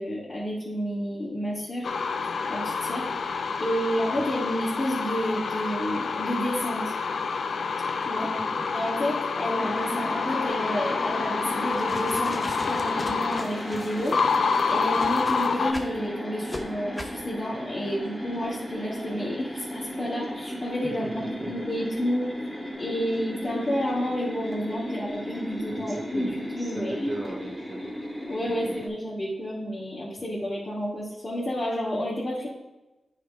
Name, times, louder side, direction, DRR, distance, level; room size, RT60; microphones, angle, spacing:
voice 1, 0.0-1.9 2.5-3.1 3.6-6.9 8.0-8.3 8.7-14.2 14.7-22.3 22.8-27.1 28.3-32.5, equal, 40° left, -8 dB, 2.5 m, -30 dB
sound 1, 1.8-15.7, left 5 dB, 75° left, 0.6 m, -28 dB
voice 2, 8.4-8.7 20.8-21.5 25.7-28.0 28.5-28.8 30.2-30.3, right 1 dB, 30° right, -2 dB, 1.3 m, -39 dB
sound 2, 9.6-28.9, equal, ahead, 3.1 m, -36 dB
sound 3, 11.6-16.0 16.5-16.6 17.0-17.2, left 1 dB, 20° left, 1.1 m, -40 dB
9.2 x 4.2 x 4.9 m, 1.0 s
cardioid pair, 60°, 0 cm